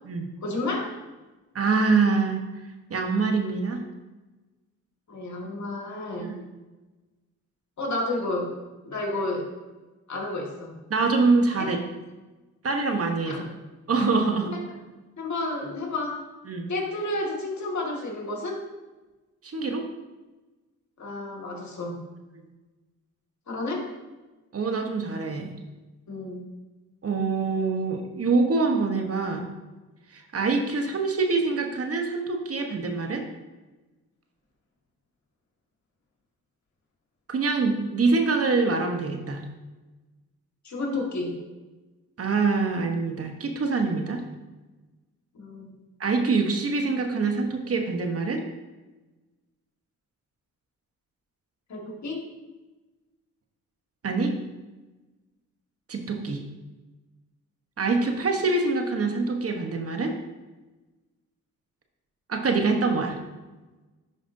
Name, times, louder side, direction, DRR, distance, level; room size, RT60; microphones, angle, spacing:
voice 1, 0.4-0.9 5.1-6.4 7.8-8.5 8.9-9.5 10.1-10.7 11.6-11.7 13.3-13.4 14.5-14.6 15.2-16.2 16.7-18.7 21.0-22.0 23.5-23.9 26.1-26.4 40.6-41.4 45.3-45.8 51.7-52.2, left 2 dB, 55° left, 0 dB, 1.8 m, -31 dB
voice 2, 1.5-2.4 2.9-3.8 6.2-6.4 10.9-11.8 12.6-13.4 13.9-14.5 16.5-16.7 19.4-19.8 24.5-25.5 27.0-29.4 30.1-33.3 37.3-39.4 42.2-44.2 46.0-48.4 54.0-54.3 55.9-56.4 57.8-60.1 62.3-63.2, right 4 dB, 45° right, 4 dB, 1.0 m, -25 dB
10.5 x 5.0 x 2.6 m, 1.2 s
supercardioid pair, 60°, 34 cm